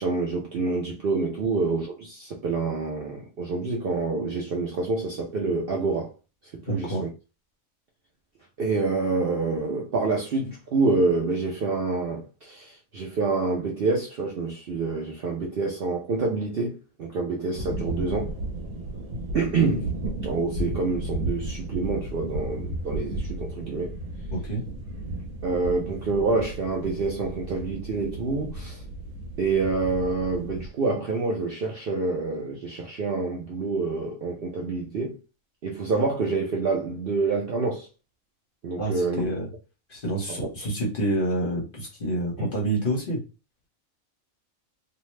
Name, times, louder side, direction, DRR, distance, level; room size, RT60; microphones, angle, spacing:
voice 1, 0.0-6.1 6.7-7.1 8.6-18.3 19.3-19.9 20.2-24.0 25.4-28.8 29.4-35.2 35.6-37.9 38.6-39.2 40.3-40.5 42.4-42.5, right 3 dB, 60° right, 0.6 m, -27 dB
voice 2, 6.7-7.1 24.3-24.6 38.8-39.5 39.9-43.2, right 1 dB, 40° left, 1.1 m, -28 dB
sound 1, 17.5-30.7, right 1 dB, 75° right, 1.1 m, -34 dB
2.6 x 2.1 x 3.1 m
omnidirectional pair, 1.4 m